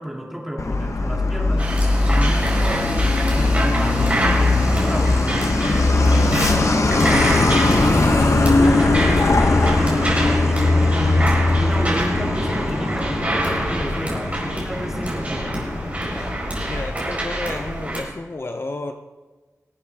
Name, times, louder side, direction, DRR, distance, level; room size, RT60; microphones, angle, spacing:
voice 1, 0.0-5.3 5.6-11.3 11.6-15.7, equal, 5° right, -1 dB, 2.5 m, -31 dB
Truck, 0.6-16.8, left 2 dB, 65° left, 1.0 m, -20 dB
sound 1, 1.6-18.0, right 1 dB, 25° right, 4.4 m, -26 dB
voice 2, 16.7-18.9, left 2 dB, 45° left, 6 dB, 0.7 m, -31 dB
22.0 x 8.4 x 3.5 m, 1.3 s
wide cardioid pair, 85°, 6 cm